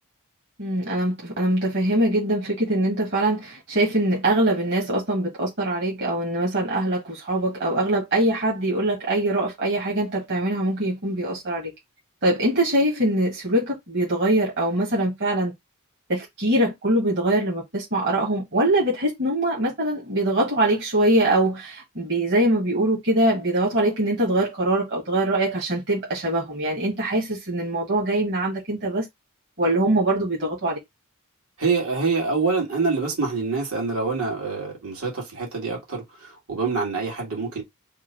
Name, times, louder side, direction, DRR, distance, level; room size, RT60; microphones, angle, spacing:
voice 1, 0.6-11.7 12.2-15.5 16.1-29.1 29.6-30.8, right 1 dB, 55° right, 1.6 m, -23 dB
voice 2, 31.6-37.6, right 4 dB, 80° right, 2.2 m, -26 dB
3.6 x 2.5 x 4.5 m
head